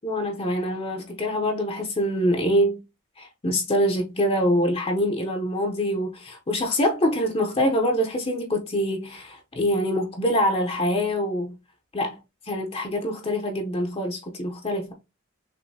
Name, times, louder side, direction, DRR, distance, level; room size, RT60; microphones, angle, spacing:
voice 1, 0.0-2.8 3.2-11.6 11.9-12.2 12.5-14.9, equal, 30° left, 0.8 m, -25 dB
6.0 x 2.7 x 2.8 m
head